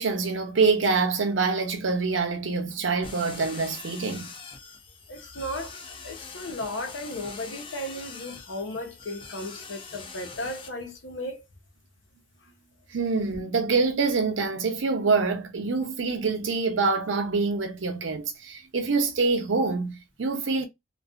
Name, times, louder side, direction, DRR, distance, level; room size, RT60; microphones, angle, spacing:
voice 1, 0.0-4.3 12.9-20.7, right 4 dB, 85° right, 0.6 m, -25 dB
sound 1, 3.0-10.7, left 4 dB, 25° left, 0.4 m, -43 dB
voice 2, 5.1-5.8 6.0-11.4, left 1 dB, 75° left, 0.7 m, -35 dB
2.5 x 2.3 x 2.3 m
head